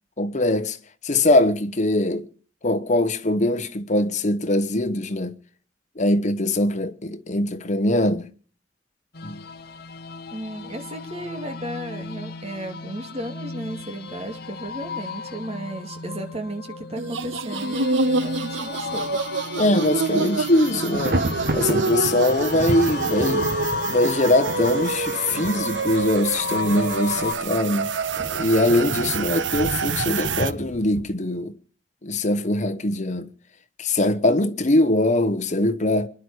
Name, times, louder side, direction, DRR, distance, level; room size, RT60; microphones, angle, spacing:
voice 1, 0.2-0.8 1.0-2.3 2.6-5.3 6.0-8.3 9.2-9.4 19.5-21.2 21.5-23.5 23.8-27.9 28.3-31.5 32.0-33.3 33.8-36.1, left 1 dB, 40° left, 1.1 m, -22 dB
sound 1, 9.1-27.3, left 4 dB, 60° left, 1.1 m, -35 dB
voice 2, 10.3-19.2, right 1 dB, 35° right, 2.3 m, -34 dB
sound 2, 17.0-30.5, right 4 dB, 80° right, 0.7 m, -27 dB
Thunder, 19.6-19.9 20.2-31.0, right 1 dB, 60° right, 1.6 m, -32 dB
25.5 x 11.0 x 4.8 m
head